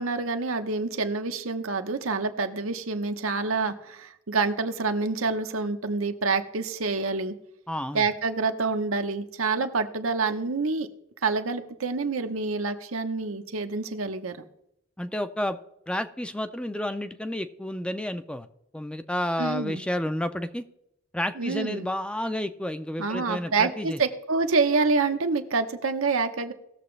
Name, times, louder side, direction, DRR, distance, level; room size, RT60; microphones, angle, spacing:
voice 1, 0.0-7.3 7.9-10.9 11.2-14.5 19.4-19.8 21.4-21.9 23.0-26.5, right 4 dB, 85° right, 7 dB, 0.9 m, -27 dB
voice 2, 7.7-8.0 15.0-15.6 15.9-18.5 18.7-20.6 21.1-24.0, left 1 dB, 5° left, 10 dB, 0.4 m, -30 dB
18.5 x 7.0 x 3.2 m, 0.79 s
head